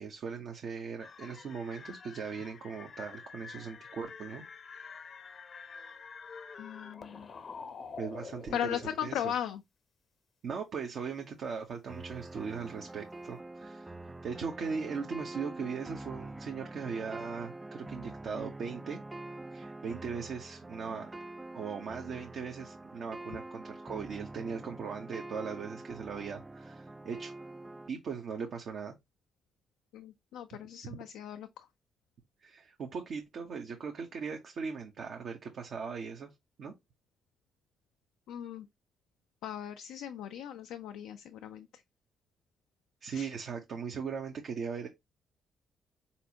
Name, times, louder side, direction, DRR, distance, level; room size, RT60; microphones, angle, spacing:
voice 1, 0.0-4.4 8.0-9.3 10.4-13.9 14.2-19.0 19.5-21.1 21.5-27.3 27.9-28.9 30.8-31.0 32.4-36.3 36.6-36.7 43.0-44.9, right 5 dB, 65° right, 0.9 m, -39 dB
sound 1, 1.0-9.3, left 5 dB, 55° left, 0.7 m, -47 dB
voice 2, 6.6-7.3 8.5-9.6 29.9-31.7 38.3-38.7 39.4-41.8 43.1-43.3, left 10 dB, 75° left, 0.4 m, -38 dB
sound 2, 11.9-27.9, right 2 dB, 20° right, 0.3 m, -45 dB
4.3 x 4.1 x 2.8 m
hypercardioid pair, 45°, 0 cm